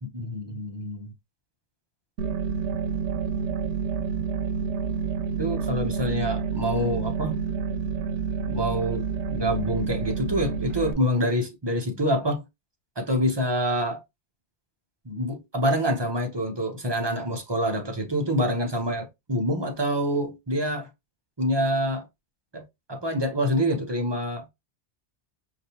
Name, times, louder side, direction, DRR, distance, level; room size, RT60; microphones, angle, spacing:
voice 1, 0.0-1.1 5.4-7.4 8.5-12.4 13.0-14.0 15.0-20.9 21.4-22.0 22.5-22.6 22.9-24.5, equal, 25° right, 0.8 m, -26 dB
sound 1, 2.2-10.9, right 6 dB, 80° right, 0.9 m, -29 dB
4.9 x 2.8 x 2.8 m
omnidirectional pair, 1.2 m